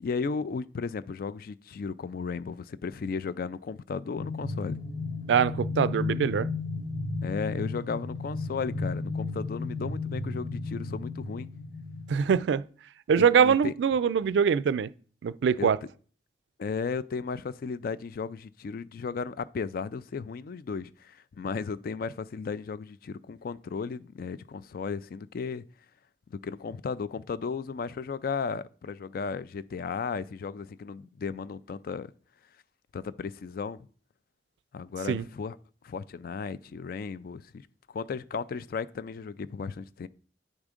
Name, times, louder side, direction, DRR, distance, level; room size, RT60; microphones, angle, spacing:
voice 1, 0.0-4.8 7.2-11.5 13.2-13.7 15.6-15.7 16.6-25.6 26.3-32.1 32.9-33.8 34.7-35.6 35.8-37.6 37.9-40.1, left 5 dB, 55° left, 0.3 m, -35 dB
sound 1, 4.1-12.3, left 3 dB, 85° left, 1.8 m, -34 dB
voice 2, 5.3-6.5 12.1-12.6 13.1-14.9 15.2-15.8 35.1-35.2, right 7 dB, 80° right, 0.3 m, -23 dB
8.9 x 3.6 x 5.0 m
head